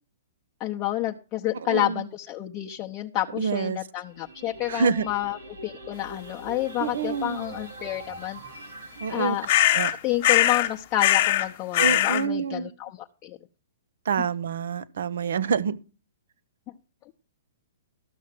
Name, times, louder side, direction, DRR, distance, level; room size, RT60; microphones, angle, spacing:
voice 1, 0.6-8.4 9.1-9.5 10.0-13.4, left 14 dB, 30° left, 0.8 m, -29 dB
voice 2, 1.7-2.0 3.3-3.8 4.7-5.1 6.8-7.4 9.0-9.4 9.7-9.9 11.8-12.7 14.0-15.8, right 6 dB, 70° right, 0.8 m, -27 dB
sound 1, 4.1-9.6, right 2 dB, 85° right, 3.0 m, -43 dB
sound 2, 9.5-9.9 10.2-10.7 11.0-11.5 11.7-12.2, left 13 dB, 50° left, 1.2 m, -21 dB
13.0 x 6.4 x 5.9 m
hypercardioid pair, 135°, 0 cm